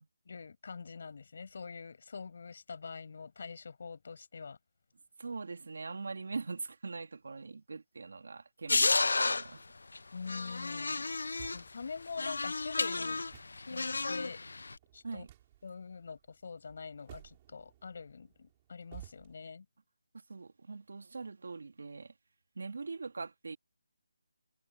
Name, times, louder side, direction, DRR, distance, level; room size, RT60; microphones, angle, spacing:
voice 1, 0.3-4.6 10.1-11.1 11.5-13.3 13.7-14.4 14.9-15.3 15.6-19.7, left 5 dB, 40° left, 7.5 m, -45 dB
voice 2, 5.2-9.6 15.0-15.3 20.1-22.1 22.5-23.6, right 4 dB, 55° right, 2.8 m, -42 dB
sound 1, 8.7-9.5 10.0-10.1 10.3-11.6 12.2-14.7, left 3 dB, 70° left, 0.9 m, -32 dB
sound 2, 10.2-19.4, right 14 dB, 15° right, 6.4 m, -57 dB
hypercardioid pair, 175°, 0 cm